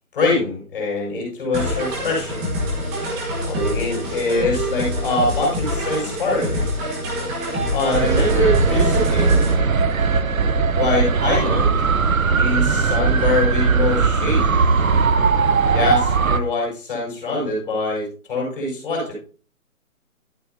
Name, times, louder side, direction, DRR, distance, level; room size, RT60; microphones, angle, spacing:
voice 1, 0.1-2.4 3.4-6.8 7.7-9.5 10.7-11.8 12.4-14.5 15.7-19.1, left 2 dB, 35° left, -2 dB, 7.0 m, -23 dB
sound 1, 1.5-9.5, equal, 5° right, 1.2 m, -25 dB
sound 2, 7.9-16.4, right 5 dB, 65° right, 1.0 m, -18 dB
13.0 x 11.0 x 2.7 m, 0.38 s
figure-of-eight pair, 160°, 44 cm